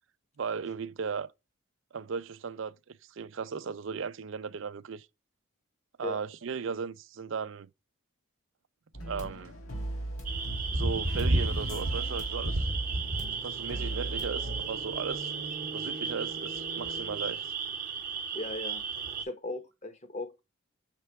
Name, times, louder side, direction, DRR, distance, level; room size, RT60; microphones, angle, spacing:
voice 1, 0.4-1.3 1.9-5.1 6.0-7.7 9.1-9.5 10.7-12.7 13.4-15.3 15.7-17.5, right 5 dB, 65° right, 0.4 m, -36 dB
sound 1, 8.9-14.6, right 1 dB, 85° left, 2.6 m, -38 dB
sound 2, 10.3-19.2, right 3 dB, 40° right, 0.9 m, -32 dB
voice 2, 18.3-18.8 19.2-20.4, left 2 dB, 35° left, 0.9 m, -37 dB
6.6 x 3.3 x 4.6 m
head